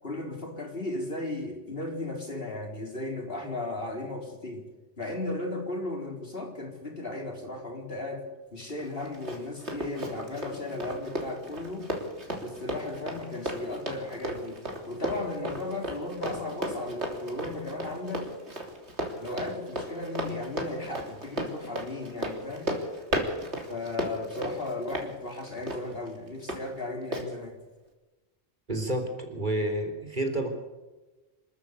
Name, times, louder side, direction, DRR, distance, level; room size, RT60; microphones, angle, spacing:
voice 1, 0.0-4.6 5.0-11.9 12.4-14.6 14.9-18.3 19.2-22.7 23.7-27.6, left 2 dB, 60° left, 2 dB, 4.4 m, -35 dB
Run, 8.8-26.6 27.1-27.3, equal, 85° right, 3.6 m, -35 dB
voice 2, 28.7-30.5, right 1 dB, 45° right, 4 dB, 3.8 m, -29 dB
27.0 x 13.5 x 8.4 m, 1.2 s
omnidirectional pair, 1.1 m